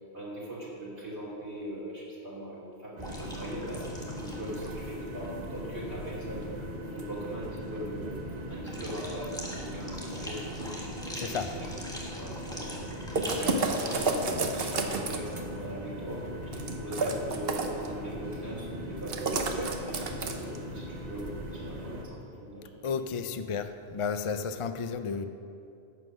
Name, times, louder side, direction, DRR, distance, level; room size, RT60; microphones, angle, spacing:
voice 1, 0.1-6.5 6.8-8.2 8.5-10.8 11.2-11.7 12.1-12.9 13.3-22.7, right 1 dB, 85° right, -7 dB, 3.4 m, -40 dB
sound 1, 3.0-4.8 5.1-5.3 8.7-14.1, equal, 5° left, 1.6 m, -43 dB
sound 2, 3.0-22.0, equal, 40° right, 1.3 m, -40 dB
voice 2, 11.1-11.5 22.8-25.3, left 5 dB, 50° left, 9 dB, 0.4 m, -32 dB
sound 3, 13.2-15.4 16.5-17.9 19.1-20.6, right 3 dB, 65° right, 1.1 m, -30 dB
11.0 x 7.7 x 6.3 m, 2.6 s
omnidirectional pair, 1.1 m